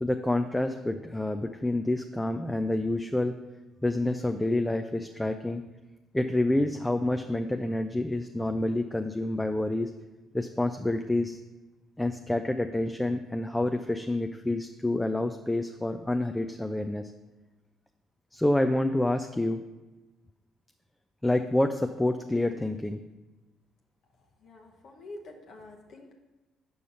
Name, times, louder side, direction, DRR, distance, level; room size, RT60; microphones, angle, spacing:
voice 1, 0.0-3.3 3.8-5.6 6.1-9.9 10.3-11.4 12.0-17.1 18.3-19.6 21.2-23.0, left 1 dB, 10° left, 6 dB, 0.4 m, -28 dB
voice 2, 24.4-26.1, left 2 dB, 60° left, 1 dB, 0.9 m, -47 dB
5.5 x 5.0 x 5.4 m, 1.1 s
hypercardioid pair, 50°, 0 cm